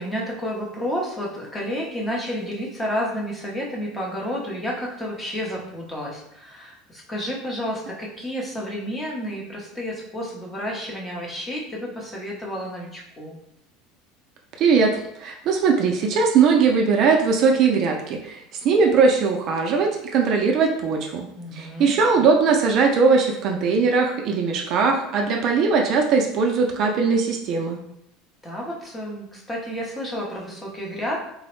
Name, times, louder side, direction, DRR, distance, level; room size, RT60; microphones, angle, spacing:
voice 1, 0.0-13.4 21.4-22.0 28.4-31.2, equal, 10° left, -2 dB, 0.6 m, -30 dB
voice 2, 14.6-21.3 21.5-27.8, right 5 dB, 40° right, 2 dB, 0.3 m, -20 dB
3.8 x 2.0 x 3.0 m, 0.76 s
cardioid pair, 165°, 0 cm